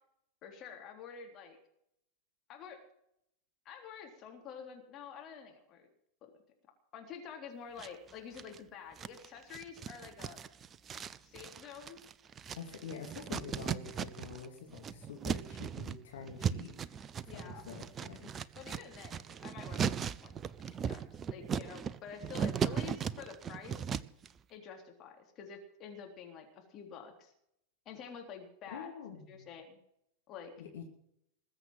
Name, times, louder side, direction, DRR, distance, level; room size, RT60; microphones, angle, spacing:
voice 1, 0.4-1.6 2.5-2.8 3.7-5.9 6.2-6.3 6.9-10.4 11.2-12.0 17.2-17.7 18.6-20.3 20.7-23.9 24.5-27.3 27.9-28.9 29.3-29.8 30.3-30.5, left 7 dB, 35° left, 3 dB, 3.7 m, -48 dB
sound 1, 7.8-8.6 9.0-14.5 14.7-24.3, right 7 dB, 25° right, 0.7 m, -38 dB
voice 2, 12.5-17.0 17.3-18.3 28.7-29.5 30.6-30.8, left 6 dB, 60° left, 2 dB, 2.7 m, -46 dB
20.5 x 7.9 x 7.6 m, 0.74 s
figure-of-eight pair, 90°, 0 cm